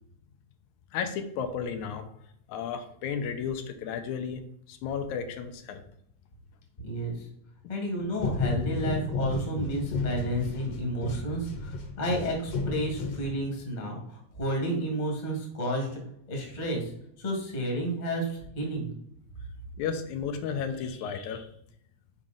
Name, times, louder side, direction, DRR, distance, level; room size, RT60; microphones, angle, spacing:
voice 1, 0.9-2.1 2.5-4.4 4.7-5.8 19.8-21.5, left 7 dB, 90° left, 7 dB, 2.1 m, -33 dB
voice 2, 6.8-7.2 7.7-16.0 16.3-16.9 17.2-18.9, right 1 dB, 25° left, 0 dB, 0.9 m, -31 dB
sound 1, 8.2-13.7, left 3 dB, 65° left, 1.7 m, -33 dB
5.6 x 4.8 x 3.7 m, 0.72 s
omnidirectional pair, 3.4 m